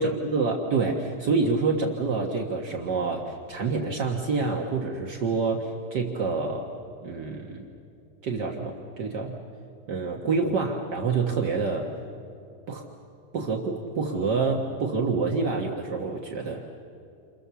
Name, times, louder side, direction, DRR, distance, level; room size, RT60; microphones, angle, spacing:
voice 1, 0.0-6.7 7.0-7.6 8.2-9.4 9.9-11.9 12.7-12.8 13.3-16.6, right 4 dB, 60° right, 0 dB, 1.1 m, -27 dB
29.5 x 27.0 x 7.0 m, 2.6 s
omnidirectional pair, 4.1 m